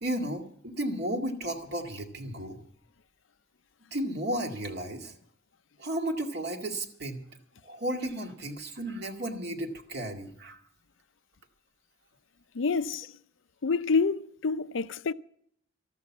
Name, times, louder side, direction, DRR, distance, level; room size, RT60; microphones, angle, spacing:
voice 1, 0.0-2.6 3.9-5.1 5.8-7.2 7.6-10.6, right 1 dB, 60° right, 2.2 m, -33 dB
voice 2, 12.5-13.1 13.6-15.1, left 4 dB, 85° left, 0.6 m, -27 dB
13.5 x 12.0 x 7.2 m
head